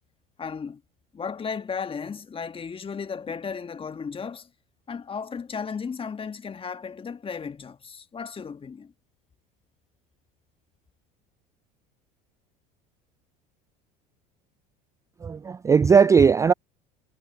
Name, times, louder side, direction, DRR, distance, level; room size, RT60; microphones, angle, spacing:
voice 1, 0.4-0.8 1.1-4.5 4.9-8.9, left 6 dB, 25° left, 1.5 m, -35 dB
voice 2, 15.2-16.5, right 6 dB, 15° right, 0.3 m, -18 dB
hypercardioid pair, 75°, 21 cm